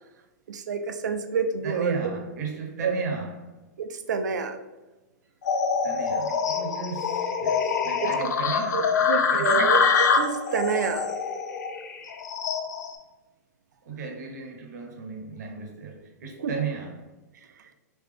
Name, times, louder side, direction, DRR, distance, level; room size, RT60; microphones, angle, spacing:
voice 1, 0.5-2.0 2.8-3.0 3.8-4.6 6.3-6.4 7.7-8.3 8.7-11.1 16.4-16.5, right 5 dB, 85° right, 0.5 m, -28 dB
voice 2, 1.6-3.5 5.8-9.8 13.8-17.1, right 5 dB, 70° right, 0.9 m, -35 dB
sound 1, 5.4-12.9, left 6 dB, 80° left, 0.6 m, -25 dB
3.8 x 2.8 x 3.3 m
hypercardioid pair, 135°, 9 cm